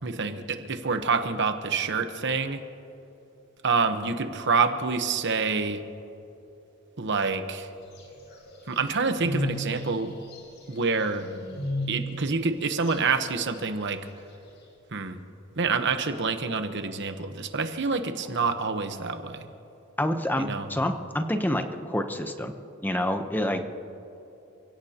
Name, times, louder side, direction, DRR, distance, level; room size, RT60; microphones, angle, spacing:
voice 1, 0.0-2.6 3.6-5.8 7.0-7.7 8.7-10.1 10.7-11.3 11.9-14.1 14.9-15.2 15.6-19.5 20.4-20.7, right 4 dB, 60° right, 8 dB, 1.0 m, -27 dB
sound 1, 8.0-9.9 10.3-10.4 10.7-10.8 11.0-12.1 12.4-13.8, left 1 dB, 55° left, 4.0 m, -34 dB
voice 2, 20.0-22.5 22.8-23.6, left 1 dB, 10° left, 6 dB, 0.8 m, -27 dB
29.5 x 16.5 x 2.9 m, 3.0 s
head